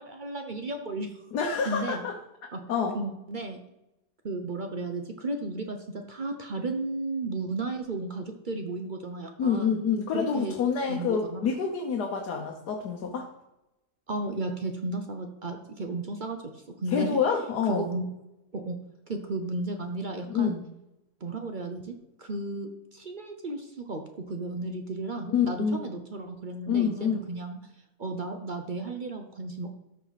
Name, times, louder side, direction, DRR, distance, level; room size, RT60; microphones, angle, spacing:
voice 1, 0.0-1.2 1.7-2.1 2.5-2.6 2.9-3.6 4.2-9.8 10.1-10.6 10.9-11.4 14.1-17.2 17.7-18.1 18.5-18.8 19.1-20.6 21.2-27.6 28.0-29.8, right 2 dB, 45° right, 5 dB, 0.6 m, -34 dB
voice 2, 1.3-2.1 2.7-3.0 9.4-13.3 16.9-17.9 20.3-20.6 25.3-25.9 26.7-27.4, left 6 dB, 80° left, 1 dB, 1.5 m, -27 dB
13.0 x 4.8 x 4.1 m, 0.92 s
omnidirectional pair, 1.7 m